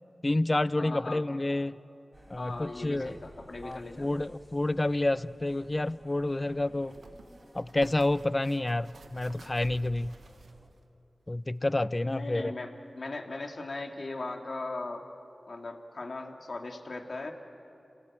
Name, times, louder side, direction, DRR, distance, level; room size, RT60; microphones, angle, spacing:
voice 1, 0.2-1.7 2.3-3.2 3.6-6.9 7.5-10.1 11.3-12.5, left 2 dB, 30° left, 17 dB, 0.5 m, -29 dB
voice 2, 0.8-1.4 2.4-4.2 12.1-15.0 15.5-17.3, left 2 dB, 60° left, 2 dB, 2.3 m, -39 dB
sound 1, 2.1-10.7, equal, 25° right, 4.1 m, -56 dB
sound 2, 6.8-10.8 11.4-11.6, right 4 dB, 90° right, 1.1 m, -51 dB
28.0 x 18.0 x 8.7 m, 2.7 s
wide cardioid pair, 60°, 0 cm